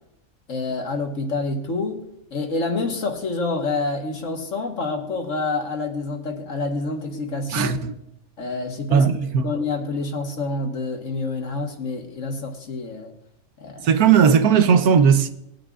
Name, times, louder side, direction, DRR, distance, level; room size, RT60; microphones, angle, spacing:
voice 1, 0.5-2.1 2.3-7.8 8.4-9.1 9.4-13.1 13.6-13.9, left 3 dB, 60° left, 1.7 m, -27 dB
voice 2, 7.5-8.0 8.9-9.5 13.8-15.3, right 7 dB, 90° right, 1.3 m, -17 dB
20.0 x 9.1 x 2.4 m
omnidirectional pair, 1.5 m